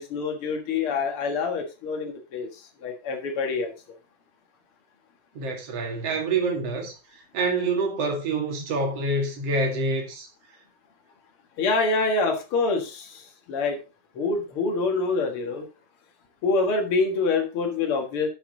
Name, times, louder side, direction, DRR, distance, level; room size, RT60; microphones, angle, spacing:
voice 1, 0.0-2.5 2.8-3.7 11.6-13.2 13.5-13.8 14.1-15.6 16.4-18.3, left 3 dB, 65° left, 1.3 m, -26 dB
voice 2, 5.3-10.3, right 3 dB, 45° right, 2.4 m, -27 dB
11.5 x 5.9 x 3.9 m
omnidirectional pair, 5.0 m